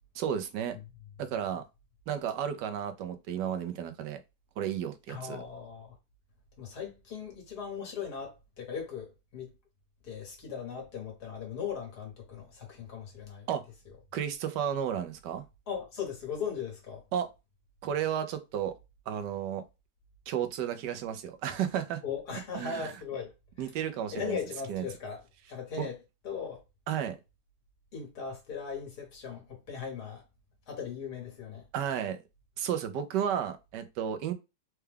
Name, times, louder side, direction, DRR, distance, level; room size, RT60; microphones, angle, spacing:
voice 1, 0.1-0.8 1.2-1.6 2.1-4.2 4.6-5.4 13.5-13.6 14.1-15.4 17.1-17.3 17.8-18.7 19.1-19.6 20.3-22.0 22.5-22.9 23.6-24.4 24.7-24.8 25.8-25.9 26.9-27.2 31.7-32.2 32.6-34.3, right 9 dB, 90° right, 1.3 m, -32 dB
voice 2, 5.1-6.0 6.6-9.5 10.0-13.5 15.7-17.0 22.0-23.3 24.1-25.2 25.5-26.0 26.2-26.6 27.9-30.2 30.7-31.6, left 6 dB, 70° left, 2.0 m, -38 dB
4.5 x 2.3 x 3.4 m
omnidirectional pair, 1.8 m